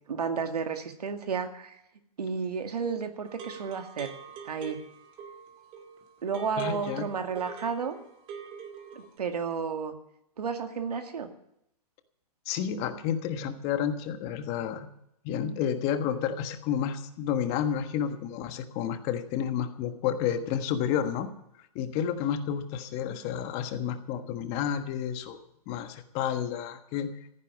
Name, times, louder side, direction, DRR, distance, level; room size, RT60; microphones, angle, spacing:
voice 1, 0.1-1.8 2.2-4.1 4.5-4.8 6.2-8.0 8.9-9.9 10.4-11.3, right 6 dB, 90° right, 6 dB, 2.2 m, -32 dB
sound 1, 3.2-9.2, right 6 dB, 30° right, 2.3 m, -45 dB
voice 2, 6.6-7.1 12.5-14.9 15.2-21.3 21.7-25.4 25.7-27.2, left 8 dB, 30° left, 9 dB, 1.4 m, -30 dB
14.5 x 10.0 x 7.1 m, 0.77 s
hypercardioid pair, 145°, 20 cm